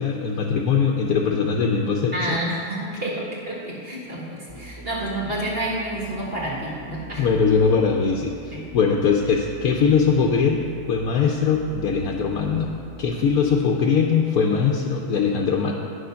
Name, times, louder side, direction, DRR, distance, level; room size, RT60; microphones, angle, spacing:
voice 1, 0.0-2.4 7.2-12.7 13.0-15.7, left 5 dB, 75° left, 0 dB, 1.2 m, -21 dB
voice 2, 2.1-7.2 8.5-8.6, right 1 dB, 40° right, -5 dB, 2.1 m, -29 dB
Musical instrument, 4.5-13.7, right 2 dB, 15° left, 1.3 m, -42 dB
9.7 x 6.5 x 5.7 m, 2.4 s
omnidirectional pair, 1.6 m